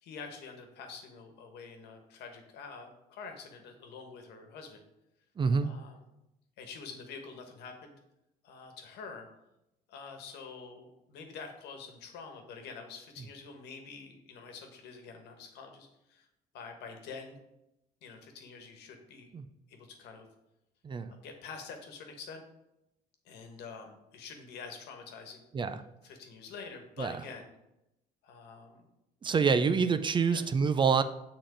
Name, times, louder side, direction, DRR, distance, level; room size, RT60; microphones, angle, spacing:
voice 1, 0.0-4.8 5.6-6.0 6.6-7.9 8.4-9.3 9.9-16.3 16.5-17.4 18.0-19.3 19.7-20.3 21.1-22.4 23.2-25.5 26.0-27.5 28.2-28.9 30.2-30.5, left 5 dB, 80° left, 4 dB, 1.3 m, -47 dB
voice 2, 5.4-5.7 19.3-19.4 20.8-21.1 25.5-25.8 27.0-27.1 29.2-31.0, right 5 dB, 30° right, 11 dB, 0.4 m, -26 dB
6.8 x 3.8 x 5.0 m, 0.88 s
cardioid pair, 110°, 17 cm